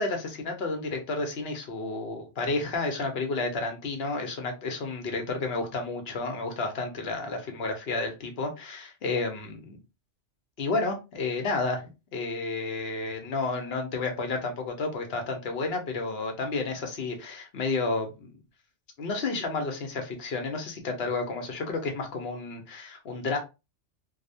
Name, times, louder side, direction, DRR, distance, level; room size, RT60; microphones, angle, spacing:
voice 1, 0.0-9.8 10.6-18.3 19.0-23.4, left 3 dB, 60° left, 0.9 m, -31 dB
2.8 x 2.0 x 2.6 m
omnidirectional pair, 1.2 m